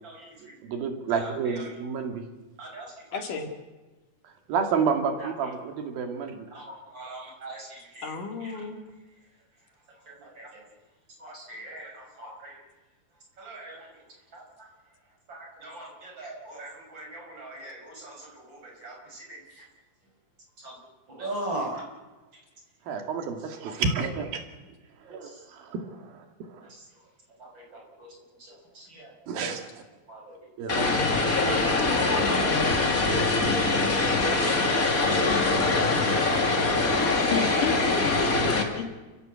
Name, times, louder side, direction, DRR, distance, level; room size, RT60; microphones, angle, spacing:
voice 1, 0.0-0.6 1.1-1.7 2.6-3.3 5.2-5.5 6.5-6.6 6.9-8.1 8.4-8.7 9.9-10.7 11.2-12.6 13.4-14.1 14.3-14.7 15.3-19.7 20.6-22.0 25.0-25.4 26.6-27.1 27.4-29.1 30.1-30.5 34.1-35.4 36.1-36.3 36.7-37.3, right 1 dB, 30° right, -1 dB, 6.6 m, -41 dB
voice 2, 0.6-2.2 4.2-6.3 22.9-24.3 25.1-26.7 29.3-29.7 30.6-31.0 31.4-31.7, right 5 dB, 80° right, 5 dB, 3.9 m, -30 dB
voice 3, 3.1-3.5 8.0-8.8 37.3-38.9, left 6 dB, 65° left, 5 dB, 3.6 m, -32 dB
Vehicle, 30.7-38.6, left 3 dB, 25° left, 2.5 m, -23 dB
29.0 x 15.5 x 8.0 m, 1.2 s
omnidirectional pair, 4.1 m